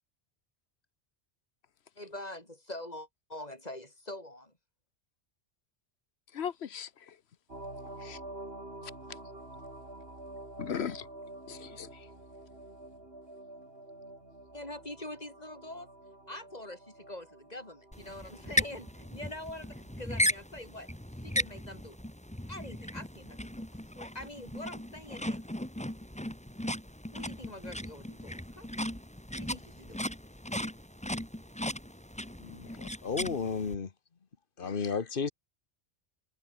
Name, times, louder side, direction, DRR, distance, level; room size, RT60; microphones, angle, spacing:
voice 1, 2.0-4.5 14.5-15.9 16.3-20.9 21.2-22.0 22.5-23.7 23.9-25.4 27.1-28.7 29.4-30.0, left 1 dB, 35° left, 7.5 m, -44 dB
voice 2, 6.3-7.1 8.0-8.2 10.6-11.1 11.5-11.9 32.7-32.8 34.6-34.7, left 8 dB, 65° left, 1.1 m, -38 dB
sound 1, 7.5-20.0, right 1 dB, 55° right, 6.0 m, -48 dB
sound 2, 17.9-33.7, equal, 5° left, 2.2 m, -37 dB
voice 3, 32.4-33.9 34.6-35.3, left 5 dB, 50° left, 1.4 m, -33 dB
omnidirectional pair, 1.2 m